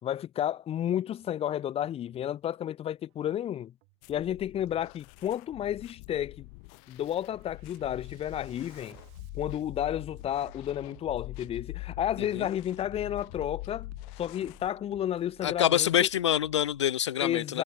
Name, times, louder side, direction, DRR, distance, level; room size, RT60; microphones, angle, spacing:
voice 1, 0.0-3.7 4.1-6.5 6.9-9.0 9.3-13.9 14.2-16.1 17.2-17.6, left 11 dB, 40° left, 2.7 m, -32 dB
Bass drum, 1.1-1.3 1.8-2.3 3.1-3.3 3.8-4.3 5.1-5.3 5.8-6.3 6.7-16.9, right 40 dB or more, 60° right, 5.4 m, -57 dB
sound 1, 4.0-14.7, left 40 dB or more, 60° left, 1.4 m, -44 dB
voice 2, 15.4-17.6, left 10 dB, 80° left, 0.4 m, -26 dB
figure-of-eight pair, 70°, 15 cm